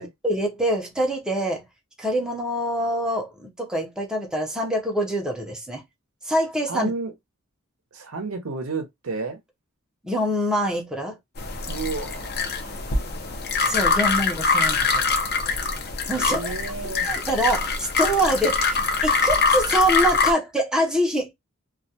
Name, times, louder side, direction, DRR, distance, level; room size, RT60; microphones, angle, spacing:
voice 1, 0.2-1.6 2.0-5.8 6.2-6.9 10.0-11.2 13.6-15.0 16.1-16.5 17.0-21.3, equal, 5° right, 0.6 m, -25 dB
voice 2, 6.7-7.1 7.9-9.4 11.7-12.9 16.2-17.1, right 4 dB, 75° right, 0.7 m, -32 dB
sound 1, 11.4-20.3, left 4 dB, 50° left, 0.6 m, -24 dB
2.3 x 2.1 x 2.7 m
head